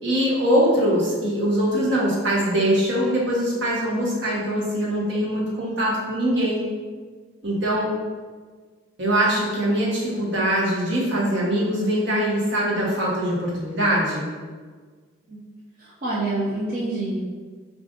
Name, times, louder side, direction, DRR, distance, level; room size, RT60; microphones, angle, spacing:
voice 1, 0.0-6.6 7.4-7.9 9.0-14.3, equal, 60° right, -6 dB, 1.0 m, -22 dB
voice 2, 15.8-17.2, right 2 dB, 40° right, -10 dB, 0.6 m, -27 dB
5.0 x 2.5 x 2.4 m, 1.5 s
head